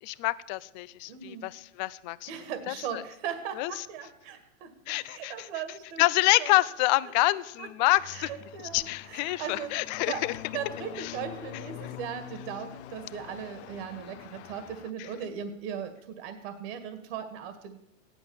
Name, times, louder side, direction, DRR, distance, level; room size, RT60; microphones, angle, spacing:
voice 1, 0.0-2.3 2.7-3.0 3.6-3.7 4.9-5.5 6.0-8.3 8.7-10.3 11.0-11.2 15.0-15.1, left 19 dB, 35° left, 18 dB, 0.6 m, -27 dB
voice 2, 1.1-1.5 2.3-6.0 6.4-6.5 7.6-7.7 8.1-9.7 10.1-10.2 10.5-17.8, right 8 dB, 50° right, 10 dB, 2.0 m, -38 dB
sound 1, 8.0-14.9, left 12 dB, 55° left, 0.9 m, -45 dB
15.5 x 11.0 x 7.1 m, 0.83 s
hypercardioid pair, 145°, 39 cm